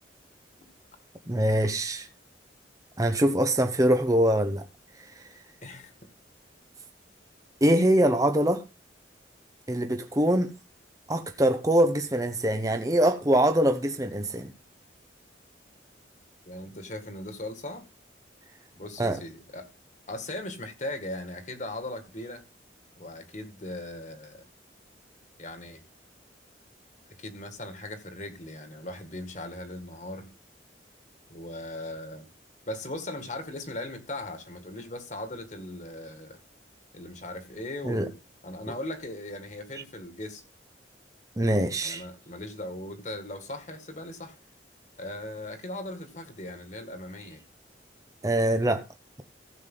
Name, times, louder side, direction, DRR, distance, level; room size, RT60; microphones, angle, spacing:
voice 1, 1.3-2.1 3.0-4.6 7.6-8.6 9.7-10.5 11.1-14.5 19.0-19.2 37.8-38.1 41.4-42.0 48.2-48.9, right 1 dB, 20° right, 0.8 m, -23 dB
voice 2, 5.6-5.9 16.4-17.8 18.7-19.7 20.1-22.4 23.0-24.4 25.4-25.8 27.2-30.3 31.3-32.3 32.7-36.4 36.9-38.2 38.4-40.4 41.8-44.4 45.0-47.4, left 1 dB, 40° left, 1.9 m, -38 dB
15.5 x 7.4 x 3.8 m
head